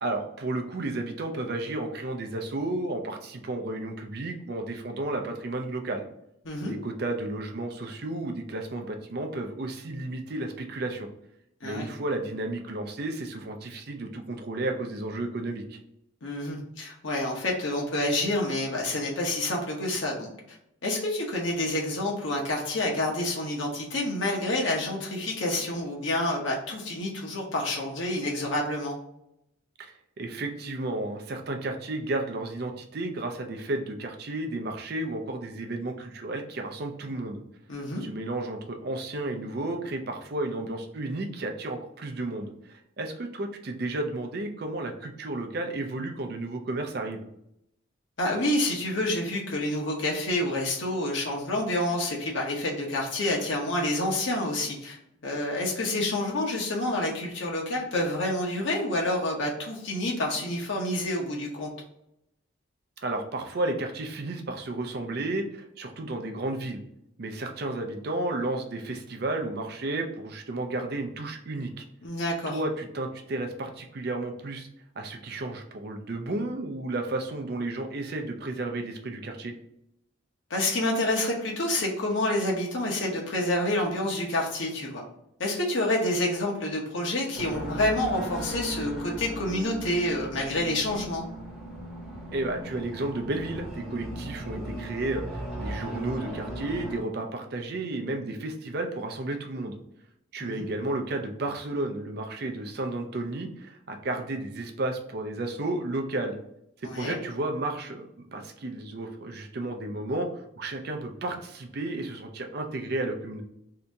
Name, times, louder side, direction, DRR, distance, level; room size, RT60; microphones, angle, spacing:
voice 1, 0.0-6.0 6.6-11.1 11.6-15.8 29.8-37.4 38.0-47.3 63.0-66.8 67.2-71.8 72.5-74.7 75.0-79.5 92.3-99.8 100.3-106.4 106.8-113.4, right 2 dB, 50° right, 4 dB, 0.5 m, -32 dB
voice 2, 6.4-6.7 11.6-11.9 16.2-20.3 20.8-29.0 37.7-38.0 48.2-55.0 55.2-61.7 72.0-72.6 80.5-85.0 85.4-91.2 100.4-100.7 106.8-107.1, left 1 dB, 65° left, -2 dB, 0.8 m, -28 dB
sound 1, 87.3-97.0, right 1 dB, ahead, 0.8 m, -37 dB
2.8 x 2.6 x 3.3 m, 0.79 s
head